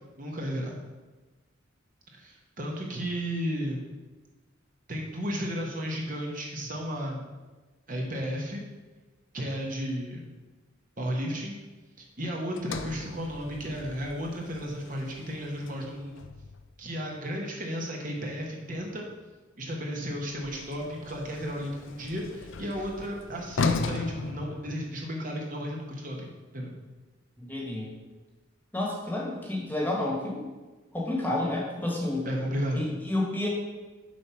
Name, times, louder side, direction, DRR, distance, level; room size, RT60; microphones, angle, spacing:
voice 1, 0.2-0.8 2.1-3.8 4.9-7.2 7.9-8.6 9.3-10.2 11.0-11.6 12.0-16.2 16.8-19.1 19.6-26.3 26.5-26.7 32.2-32.8, equal, 40° right, 0 dB, 1.1 m, -33 dB
Sliding door, 12.6-16.8 20.3-25.2, left 4 dB, 75° left, 0.5 m, -36 dB
voice 2, 27.4-28.0 28.7-30.5 30.9-32.3 32.7-33.5, left 1 dB, 10° left, -2 dB, 1.4 m, -30 dB
7.4 x 4.4 x 5.8 m, 1.2 s
head